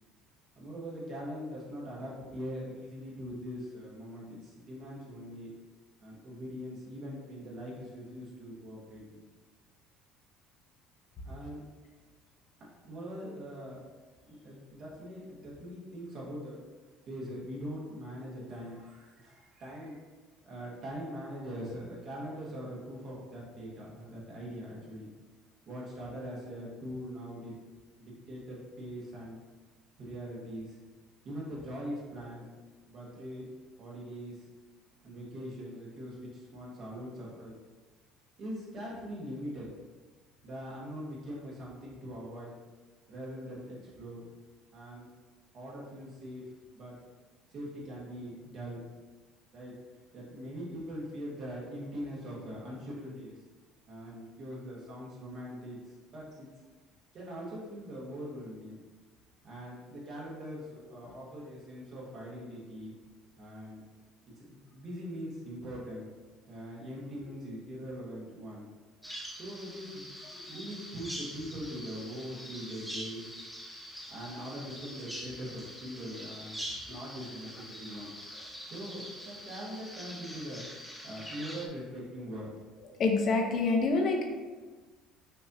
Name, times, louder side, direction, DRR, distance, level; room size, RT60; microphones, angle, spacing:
voice 1, 0.5-5.5 6.0-9.2 11.2-11.6 12.8-13.8 14.2-16.6 17.1-20.0 20.4-25.1 25.7-27.6 28.0-29.4 30.0-30.8 31.2-32.5 32.9-33.5 33.8-34.5 35.0-37.5 38.4-39.7 40.4-42.5 43.1-44.3 44.7-45.1 45.5-47.0 47.5-48.9 49.5-49.8 50.1-53.4 53.9-56.5 57.1-58.8 59.4-62.9 63.4-63.8 64.4-66.1 66.5-68.6 69.4-70.1 70.5-73.3 74.1-78.1 78.7-80.6 81.0-82.5, equal, 45° right, -5 dB, 1.5 m, -42 dB
Bird vocalization bird call bird song, 69.0-81.7, equal, ahead, 0.6 m, -44 dB
voice 2, 83.0-84.2, left 3 dB, 40° left, 2 dB, 0.7 m, -26 dB
6.0 x 2.7 x 2.8 m, 1.3 s
cardioid pair, 135°, 0 cm